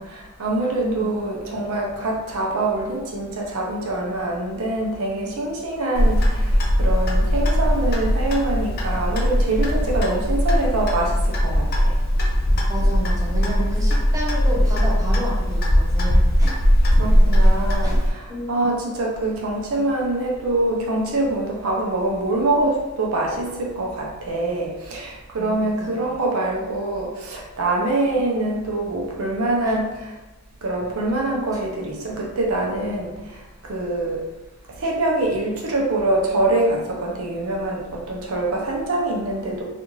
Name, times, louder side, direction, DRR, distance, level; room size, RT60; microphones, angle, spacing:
voice 1, 0.0-11.9 16.9-30.1 30.6-33.1 33.7-34.2 34.8-39.6, right 2 dB, 70° right, -1 dB, 0.6 m, -24 dB
voice 2, 0.6-1.1 12.7-16.6 17.4-18.0 18.3-18.5 25.4-26.0 29.6-29.8, right 1 dB, 15° right, -5 dB, 0.7 m, -31 dB
Clock, 5.9-18.1, equal, 45° left, 0.5 m, -19 dB
2.5 x 2.5 x 3.0 m, 1.1 s
head